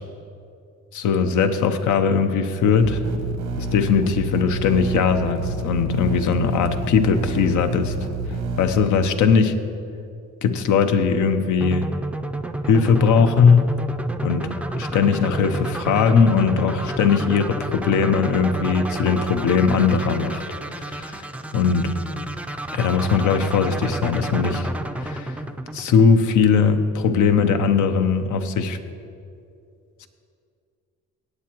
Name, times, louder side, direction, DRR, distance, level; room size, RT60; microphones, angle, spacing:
voice 1, 0.9-3.0 3.6-7.9 8.6-9.5 10.4-11.9 12.6-13.7 14.2-14.5 14.8-20.4 20.7-21.2 21.5-21.9 22.7-24.7 25.0-25.3 25.7-28.8 30.0-30.1, left 5 dB, 75° left, 8 dB, 0.8 m, -19 dB
sound 1, 2.8-8.7, right 3 dB, 85° right, 1.1 m, -29 dB
sound 2, 11.6-26.5, right 1 dB, 5° right, 0.4 m, -31 dB
17.5 x 8.5 x 3.0 m, 2.5 s
cardioid pair, 90°, 30 cm